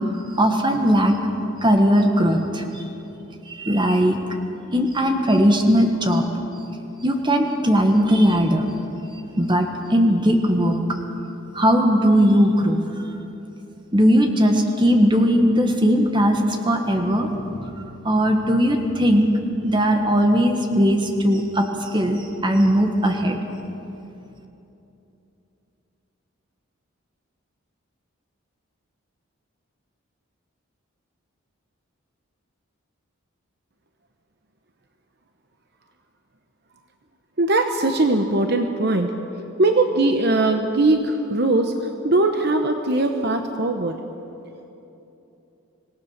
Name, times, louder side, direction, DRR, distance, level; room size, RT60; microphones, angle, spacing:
voice 1, 0.3-1.2 1.6-2.6 3.4-4.2 4.7-6.3 7.0-8.7 9.4-10.8 11.5-12.8 13.9-17.3 18.0-19.3 19.6-23.4, equal, 20° right, 4 dB, 1.6 m, -18 dB
voice 2, 37.4-39.1 39.6-41.7 42.0-44.0, right 2 dB, 50° right, 5 dB, 1.0 m, -20 dB
25.5 x 17.5 x 6.6 m, 2.9 s
head